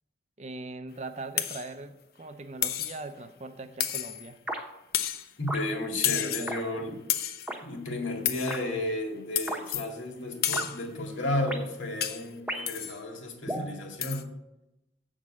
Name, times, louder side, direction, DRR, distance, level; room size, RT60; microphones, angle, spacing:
voice 1, 0.4-4.4 6.0-6.8, right 2 dB, 35° right, 0.5 m, -41 dB
sound 1, 1.4-1.7 2.6-3.0 3.8-4.3 4.9-5.3 6.0-6.6 7.1-7.5 8.3-8.6 9.4-9.9 10.4-10.8 12.0-12.3 12.7-13.0 14.0-14.2, left 11 dB, 50° left, 0.6 m, -30 dB
sound 2, 4.5-4.7 5.5-5.7 6.5-6.6 7.5-7.6 8.5-8.6 9.5-9.6 10.5-10.7 11.5-11.6 12.5-12.8 13.5-13.7, right 1 dB, 5° right, 0.9 m, -34 dB
voice 2, 5.4-7.0 7.6-14.3, left 1 dB, 85° left, 2.0 m, -33 dB
7.8 x 6.3 x 7.3 m
head